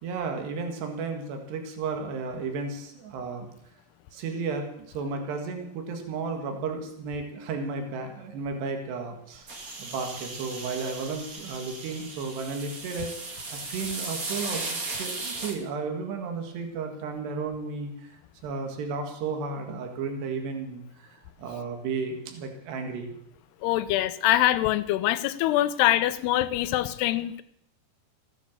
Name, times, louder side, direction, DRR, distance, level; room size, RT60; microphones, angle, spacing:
voice 1, 0.0-3.5 4.1-4.7 4.9-13.1 13.5-23.2, right 4 dB, 80° right, 4 dB, 4.0 m, -33 dB
sound 1, 9.5-15.6, right 3 dB, 40° right, 1.2 m, -36 dB
voice 2, 23.6-27.4, left 14 dB, 80° left, 14 dB, 2.8 m, -24 dB
15.5 x 10.0 x 7.3 m, 0.75 s
omnidirectional pair, 4.8 m